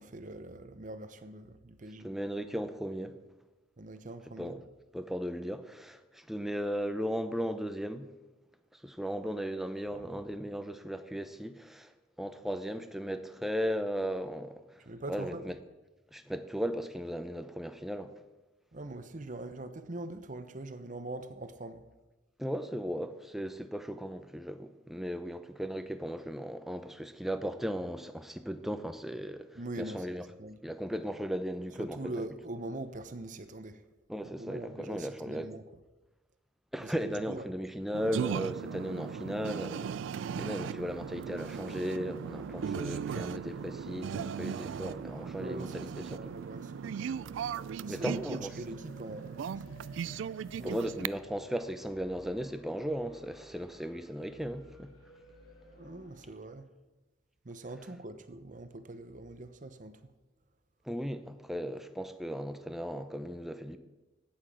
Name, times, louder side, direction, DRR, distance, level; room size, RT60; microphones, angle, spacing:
voice 1, 0.0-2.1 3.8-4.6 9.9-10.0 14.9-15.5 18.7-21.8 29.5-30.1 30.4-30.6 31.8-33.8 34.4-35.6 36.8-37.5 45.4-47.1 47.8-49.9 50.4-50.9 55.8-56.7 57.4-60.1, right 2 dB, 40° right, 0.8 m, -43 dB
voice 2, 2.0-3.1 4.4-4.6 4.9-8.1 8.7-14.8 15.1-15.5 16.1-18.2 22.4-30.3 30.6-32.2 34.1-35.5 36.7-39.9 40.4-46.2 47.9-48.5 50.6-54.9 60.9-63.8, equal, ahead, 0.7 m, -36 dB
sound 1, 37.9-51.1, right 7 dB, 80° right, 0.3 m, -38 dB
sound 2, 40.3-56.4, left 1 dB, 90° left, 3.2 m, -56 dB
9.0 x 8.9 x 7.5 m
head